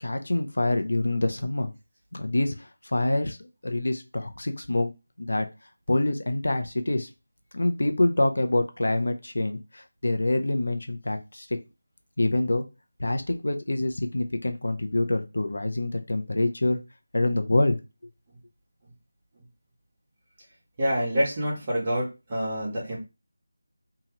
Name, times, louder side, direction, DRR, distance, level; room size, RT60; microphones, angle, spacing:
voice 1, 0.0-1.7 2.1-3.4 3.6-4.9 5.2-5.5 5.9-7.1 7.5-11.6 12.2-12.6 13.0-16.8 17.1-17.8, left 2 dB, 75° left, 7 dB, 0.6 m, -26 dB
voice 2, 20.8-23.0, equal, 25° right, -4 dB, 1.1 m, -27 dB
2.8 x 2.3 x 3.0 m, 0.26 s
figure-of-eight pair, 170°, 0 cm